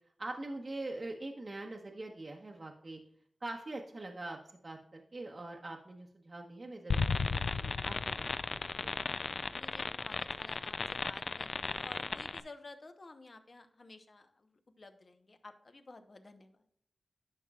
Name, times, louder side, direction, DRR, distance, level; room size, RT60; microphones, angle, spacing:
voice 1, 0.2-3.0 3.4-4.4 4.6-9.0, right 2 dB, 40° right, 0 dB, 0.9 m, -43 dB
sound 1, 6.9-12.4, left 4 dB, 65° left, 0.4 m, -35 dB
voice 2, 9.5-16.6, left 3 dB, 50° left, 8 dB, 0.9 m, -53 dB
11.0 x 5.8 x 2.4 m, 0.67 s
wide cardioid pair, 90°, 0 cm